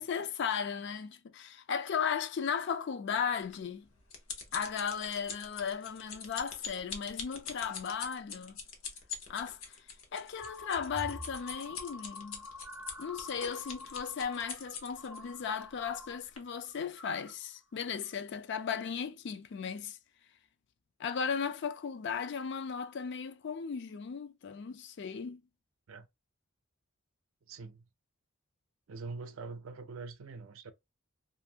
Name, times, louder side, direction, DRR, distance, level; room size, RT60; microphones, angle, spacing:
voice 1, 0.0-3.9 4.5-8.6 9.3-9.9 10.1-12.5 13.0-20.0 21.0-25.4, left 6 dB, 55° left, 0.4 m, -36 dB
sound 1, 3.5-15.2 15.8-16.0 16.4-16.5, left 6 dB, 80° left, 0.9 m, -43 dB
sound 2, 10.4-16.2 16.5-17.3 17.8-18.1, left 1 dB, 10° right, 0.4 m, -47 dB
voice 2, 27.4-27.9 28.9-30.7, right 4 dB, 75° right, 0.5 m, -44 dB
2.6 x 2.5 x 2.7 m
head